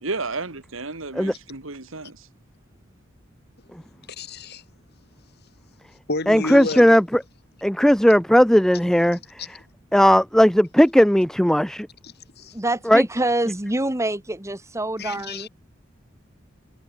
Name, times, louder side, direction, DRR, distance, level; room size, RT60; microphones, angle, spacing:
voice 1, 0.0-2.3, right 3 dB, 85° right, 2.5 m, -32 dB
voice 2, 4.2-4.6 6.1-6.9 9.4-9.5 12.0-12.5 15.0-15.5, left 2 dB, 55° left, 3.3 m, -31 dB
voice 3, 6.3-7.2 7.6-9.2 9.9-11.9 12.9-13.0, equal, 5° left, 0.7 m, -16 dB
voice 4, 12.5-15.5, right 1 dB, 15° right, 1.8 m, -26 dB
head